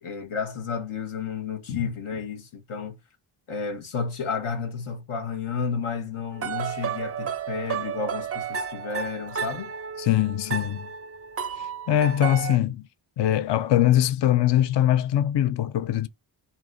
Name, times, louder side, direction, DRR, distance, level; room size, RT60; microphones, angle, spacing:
voice 1, 0.0-3.0 3.5-9.7, left 5 dB, 80° left, 1.1 m, -31 dB
sound 1, 6.3-12.6, right 7 dB, 30° right, 0.4 m, -32 dB
voice 2, 10.0-10.9 11.6-12.8 13.2-16.1, left 12 dB, 60° left, 0.5 m, -22 dB
3.8 x 2.8 x 3.8 m
wide cardioid pair, 95°, 49 cm